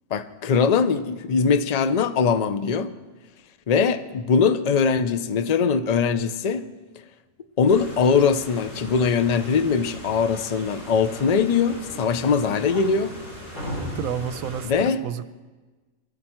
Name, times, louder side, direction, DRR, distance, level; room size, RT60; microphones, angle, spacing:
voice 1, 0.1-2.9 3.7-6.6 7.6-13.1 14.6-15.0, left 5 dB, 45° left, 12 dB, 0.5 m, -21 dB
sound 1, 7.7-14.7, equal, 65° left, 6.1 m, -37 dB
voice 2, 14.0-15.2, right 9 dB, 85° right, 13 dB, 1.1 m, -30 dB
20.0 x 13.0 x 4.5 m, 1.2 s
omnidirectional pair, 1.4 m